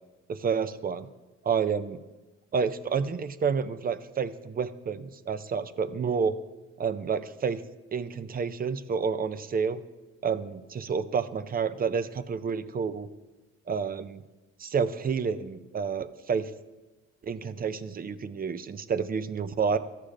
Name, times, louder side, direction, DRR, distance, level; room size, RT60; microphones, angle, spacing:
voice 1, 0.3-1.1 1.4-2.0 2.5-6.3 6.8-7.6 7.9-9.8 10.2-13.1 13.7-14.2 14.6-16.5 17.2-19.8, right 6 dB, 30° right, 13 dB, 0.5 m, -29 dB
14.0 x 6.6 x 2.5 m, 1.2 s
cardioid pair, 90°, 30 cm